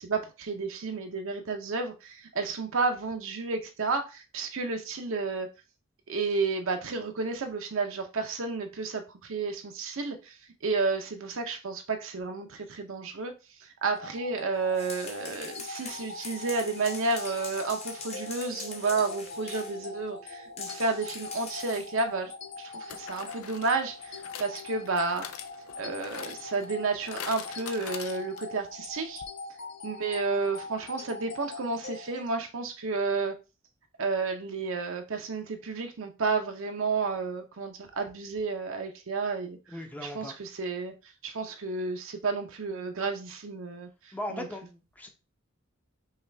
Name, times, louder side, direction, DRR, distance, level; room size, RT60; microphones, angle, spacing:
voice 1, 0.0-5.5 6.1-10.4 10.6-13.3 13.8-25.3 25.8-29.2 29.8-33.4 34.0-39.6 40.0-40.9 41.2-43.9 44.3-44.5, right 4 dB, 65° right, 0.7 m, -31 dB
sound 1, 13.8-32.3, left 3 dB, 55° left, 1.0 m, -43 dB
sound 2, 14.6-19.8 20.6-22.0, left 4 dB, 30° left, 1.1 m, -43 dB
sound 3, 21.6-21.7 22.9-28.6 28.9-29.0 29.2-29.3, left 8 dB, 85° left, 0.5 m, -44 dB
voice 2, 39.7-40.4 44.1-45.1, left 1 dB, 10° left, 0.7 m, -38 dB
5.6 x 2.4 x 3.3 m
head